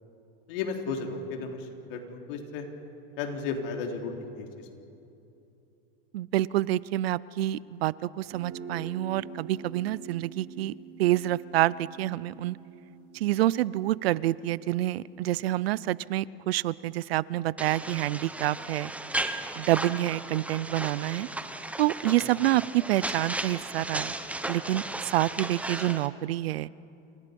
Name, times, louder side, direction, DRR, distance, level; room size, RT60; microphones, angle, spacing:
voice 1, 0.5-2.7 3.2-4.7 22.2-22.4, left 4 dB, 65° left, 2 dB, 3.9 m, -34 dB
voice 2, 6.1-10.7 11.0-12.6 13.1-18.9 19.6-21.3 21.8-24.1 24.5-26.7, right 15 dB, 85° right, 21 dB, 0.6 m, -27 dB
Guitar, 8.2-15.9, right 5 dB, 45° right, 5.4 m, -47 dB
sound 1, 17.6-26.1, right 2 dB, 5° right, 1.0 m, -35 dB
29.0 x 27.0 x 5.4 m, 2.8 s
supercardioid pair, 135°, 30 cm